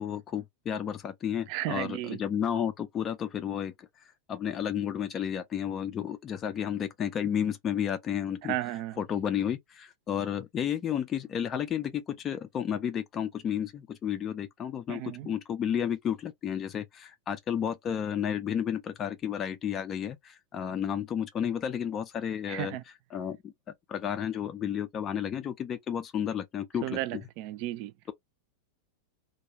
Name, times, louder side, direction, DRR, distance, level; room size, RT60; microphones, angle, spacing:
voice 1, 0.0-3.9 4.3-8.6 9.0-22.8 23.1-23.5 23.9-27.2, left 9 dB, 25° left, 0.4 m, -32 dB
voice 2, 1.5-2.2 8.4-9.0 14.9-15.3 22.5-22.8 26.8-27.9, right 14 dB, 45° right, 0.3 m, -34 dB
2.3 x 2.2 x 2.9 m
figure-of-eight pair, 90°, 0 cm